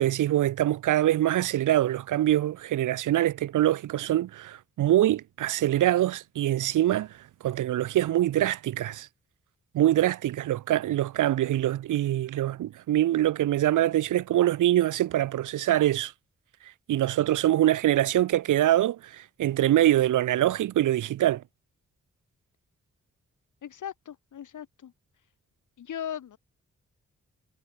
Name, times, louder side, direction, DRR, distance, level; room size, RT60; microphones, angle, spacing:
voice 1, 0.0-7.1 7.4-9.1 9.7-16.1 16.9-21.4, right 13 dB, 90° right, 1.0 m, -24 dB
voice 2, 23.6-24.9 25.8-26.4, left 9 dB, 80° left, 4.7 m, -38 dB
cardioid pair, 50°, 30 cm